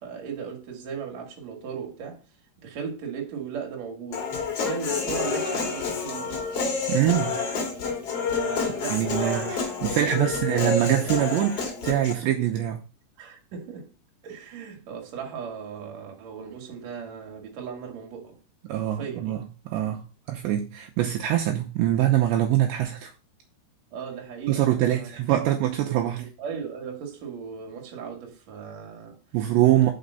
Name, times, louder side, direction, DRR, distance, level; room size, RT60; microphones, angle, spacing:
voice 1, 0.0-2.2 2.6-6.4 8.2-10.6 13.2-13.9 14.2-18.4 18.8-19.4 23.9-25.1 26.2-29.2 29.7-29.9, right 6 dB, 50° right, 2.4 m, -37 dB
Human voice, 4.1-12.1, left 4 dB, 65° left, 1.5 m, -29 dB
voice 2, 6.9-7.4 8.9-12.8 18.6-19.4 19.7-23.1 24.5-26.2 29.3-29.9, right 12 dB, 75° right, 2.8 m, -24 dB
6.0 x 5.3 x 6.8 m
omnidirectional pair, 5.6 m